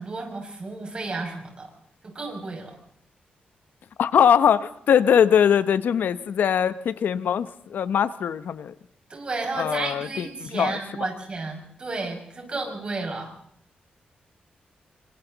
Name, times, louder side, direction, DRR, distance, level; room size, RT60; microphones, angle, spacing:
voice 1, 0.0-1.7 2.0-2.8 9.1-13.3, right 3 dB, 35° right, 1 dB, 6.0 m, -32 dB
voice 2, 4.0-8.7 9.5-10.8, left 8 dB, 80° left, 14 dB, 0.8 m, -21 dB
26.5 x 25.0 x 4.0 m, 0.67 s
wide cardioid pair, 145°, 3 cm